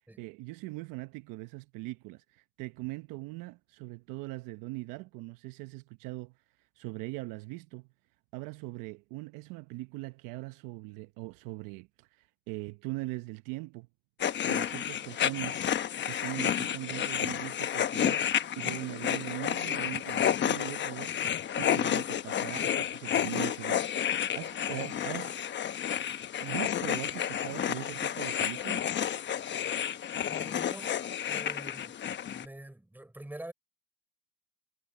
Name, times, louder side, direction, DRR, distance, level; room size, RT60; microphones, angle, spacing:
voice 1, 0.2-6.4 6.8-7.9 8.3-13.9 14.4-15.6 16.1-25.4 26.4-28.9, right 21 dB, 60° right, 0.9 m, -41 dB
sound 1, 14.2-32.5, left 9 dB, 30° left, 1.0 m, -31 dB
voice 2, 30.2-31.0 31.3-32.0 32.3-33.5, right 1 dB, 5° right, 6.6 m, -46 dB
supercardioid pair, 125°, 38 cm